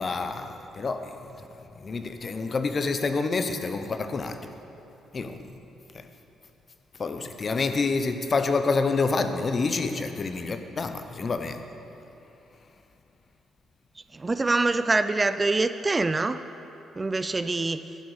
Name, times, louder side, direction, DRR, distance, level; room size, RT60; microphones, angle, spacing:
voice 1, 0.0-1.5 1.8-4.4 5.1-5.4 5.9-6.1 7.0-11.6, left 4 dB, 40° left, 8 dB, 0.8 m, -28 dB
voice 2, 14.1-16.4 17.0-17.8, right 3 dB, 25° right, 11 dB, 0.3 m, -25 dB
11.5 x 10.5 x 4.8 m, 2.9 s
cardioid pair, 90°, 0 cm